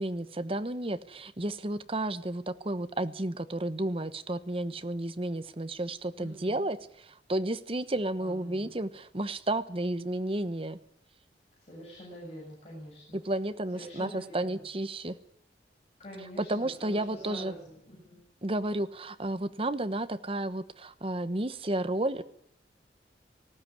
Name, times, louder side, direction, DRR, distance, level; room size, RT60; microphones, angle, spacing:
voice 1, 0.0-10.8 13.1-15.2 16.2-17.5 18.4-22.2, right 1 dB, 30° right, 12 dB, 1.1 m, -32 dB
voice 2, 6.2-6.6 8.2-8.7 11.7-13.2 13.7-14.6 16.0-18.2, equal, 35° left, -4 dB, 7.7 m, -45 dB
19.5 x 15.5 x 9.8 m, 0.71 s
head